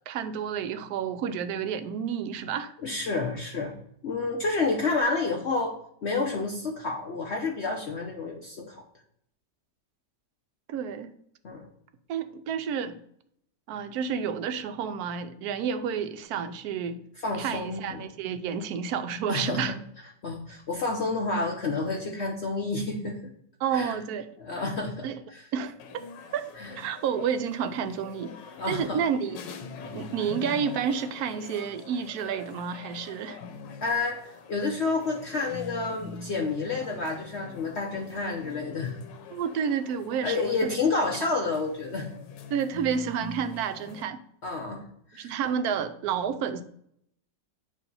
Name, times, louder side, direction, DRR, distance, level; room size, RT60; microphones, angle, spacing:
voice 1, 0.1-2.7 10.7-11.1 12.1-13.0 13.7-17.0 17.3-19.7 23.6-24.3 25.0-25.2 25.5-26.1 26.3-26.4 26.8-28.3 28.7-29.4 29.9-33.4 39.3-40.7 41.2-41.3 42.5-44.2 45.1-46.6, right 7 dB, 70° right, 10 dB, 1.0 m, -30 dB
voice 2, 2.8-3.7 4.0-5.7 6.0-8.8 11.4-11.7 17.2-18.1 19.3-19.8 20.2-23.2 23.7-24.0 24.4-25.4 26.6-26.7 28.6-29.0 33.8-34.2 34.5-39.0 40.2-42.1 44.4-44.8 45.1-45.4, left 3 dB, 55° left, 1 dB, 0.8 m, -29 dB
sound 1, 25.8-44.0, left 4 dB, 85° left, 1.4 m, -44 dB
8.3 x 2.8 x 5.3 m, 0.69 s
omnidirectional pair, 1.9 m